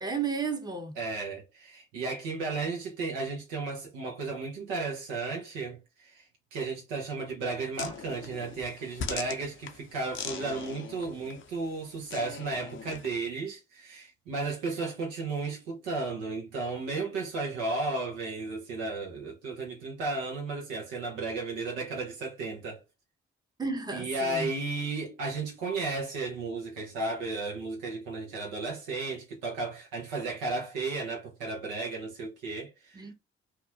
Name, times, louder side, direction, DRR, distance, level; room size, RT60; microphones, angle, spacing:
voice 1, 0.0-1.0 23.6-24.5 32.9-33.1, right 4 dB, 15° right, 0.7 m, -33 dB
voice 2, 1.0-22.8 23.9-33.1, right 3 dB, 85° right, 0.9 m, -34 dB
sound 1, 7.8-13.2, left 6 dB, 40° left, 0.5 m, -41 dB
2.8 x 2.2 x 2.3 m
hypercardioid pair, 40°, 31 cm